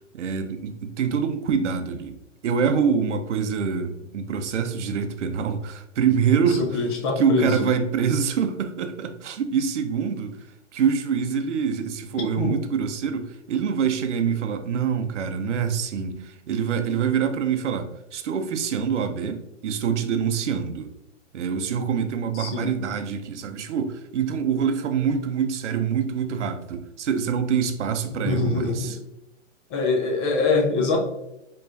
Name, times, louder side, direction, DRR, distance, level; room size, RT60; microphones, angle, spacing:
voice 1, 0.1-2.2 2.4-6.8 7.2-10.4 10.7-20.9 21.3-29.0, right 7 dB, 70° right, 0.7 m, -25 dB
voice 2, 6.6-7.5 12.4-12.6 22.4-22.7 28.2-28.9 29.7-31.0, left 3 dB, 20° left, 0.6 m, -23 dB
4.6 x 3.1 x 2.6 m
hypercardioid pair, 140°, 37 cm